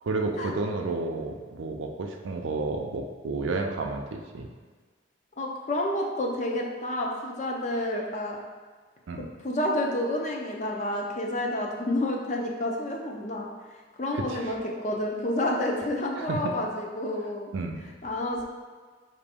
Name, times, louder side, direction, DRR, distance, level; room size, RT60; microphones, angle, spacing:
voice 1, 0.0-4.5 9.1-9.2 14.1-14.5 16.2-16.5 17.5-17.8, right 3 dB, 80° right, 3 dB, 0.5 m, -31 dB
voice 2, 5.4-8.4 9.4-13.5 14.0-17.5 18.0-18.4, left 1 dB, 40° left, -1 dB, 0.5 m, -29 dB
5.0 x 2.6 x 3.5 m, 1.5 s
head